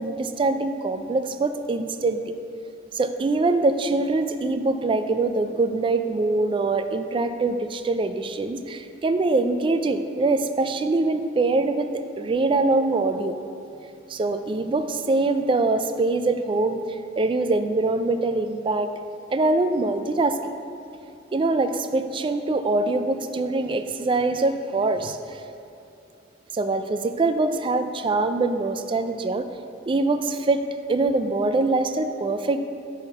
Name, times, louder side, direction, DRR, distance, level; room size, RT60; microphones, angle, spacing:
voice 1, 0.0-2.2 2.9-11.9 12.2-13.4 14.1-18.9 19.3-20.5 21.3-25.4 26.5-29.5 29.9-30.6 30.9-32.6, right 3 dB, 25° right, 9 dB, 0.3 m, -23 dB
8.9 x 3.6 x 5.7 m, 2.6 s
head